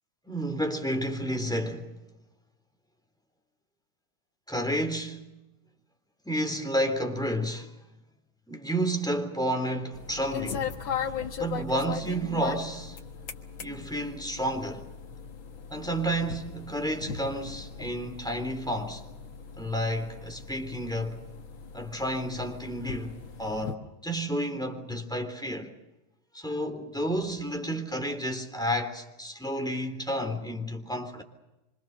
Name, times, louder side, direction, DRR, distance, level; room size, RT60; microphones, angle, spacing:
voice 1, 0.3-1.9 4.5-5.3 6.2-7.7 8.5-11.1 11.4-13.0 13.6-14.9 15.7-19.0 19.6-21.2 21.7-25.7 26.3-31.2, equal, ahead, 3.3 m, -31 dB
sound 1, 9.9-23.8, left 7 dB, 65° left, 2.3 m, -39 dB
26.0 x 25.5 x 6.6 m
omnidirectional pair, 2.4 m